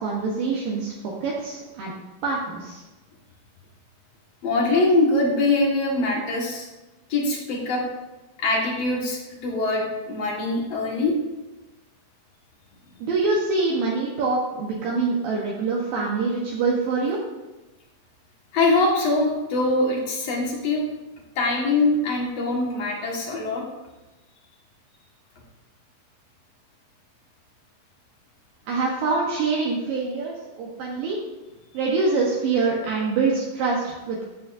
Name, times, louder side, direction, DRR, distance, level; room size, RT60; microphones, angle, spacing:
voice 1, 0.0-1.9 2.2-2.8 13.0-17.2 28.7-31.2 31.7-34.3, right 4 dB, 70° right, -3 dB, 2.5 m, -25 dB
voice 2, 4.4-6.7 7.1-7.8 8.4-11.2 18.5-20.9 21.4-23.6, left 2 dB, 50° left, -2 dB, 2.1 m, -23 dB
14.0 x 8.6 x 2.6 m, 1.1 s
omnidirectional pair, 4.8 m